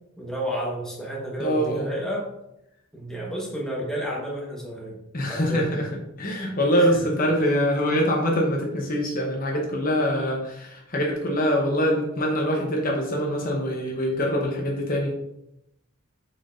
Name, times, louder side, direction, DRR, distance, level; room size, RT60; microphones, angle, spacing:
voice 1, 0.2-2.3 2.9-5.0 5.3-5.6 6.8-7.0 7.4-7.5, equal, 5° left, -4 dB, 1.4 m, -31 dB
voice 2, 1.4-1.9 5.1-5.9 6.2-15.3, equal, 40° left, 0 dB, 1.0 m, -24 dB
6.4 x 6.0 x 2.6 m, 0.83 s
head